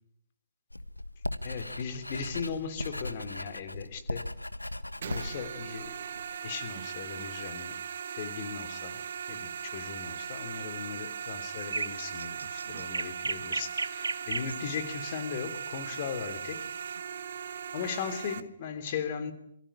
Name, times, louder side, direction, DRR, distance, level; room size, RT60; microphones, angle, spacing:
Writing, 0.7-6.4, left 1 dB, 85° left, 1.4 m, -38 dB
voice 1, 1.4-4.3 4.9-6.1 6.4-7.8 8.2-9.0 9.3-16.7 17.7-19.3, left 7 dB, 40° left, 3.3 m, -38 dB
sound 1, 5.0-18.4, right 7 dB, 50° right, 1.4 m, -39 dB
sound 2, 11.6-14.6 16.6-16.9, right 3 dB, 70° right, 1.6 m, -34 dB
27.0 x 24.0 x 8.8 m
figure-of-eight pair, 130°, 0 cm